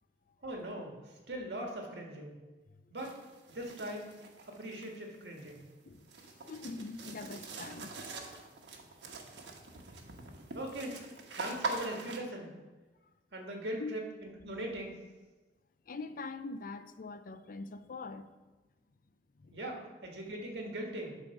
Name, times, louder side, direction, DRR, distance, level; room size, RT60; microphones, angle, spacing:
voice 1, 0.4-2.4 2.9-3.1 3.5-4.1 4.4-5.6 10.5-11.1 11.3-12.5 13.3-14.9 19.5-21.2, right 1 dB, 70° right, 1.8 m, -40 dB
sound 1, 3.0-12.2, right 3 dB, 90° right, 1.2 m, -44 dB
voice 2, 5.8-8.2 13.8-14.0 15.9-18.3 19.4-19.6, left 3 dB, 50° left, 0.5 m, -44 dB
11.5 x 4.2 x 5.9 m
head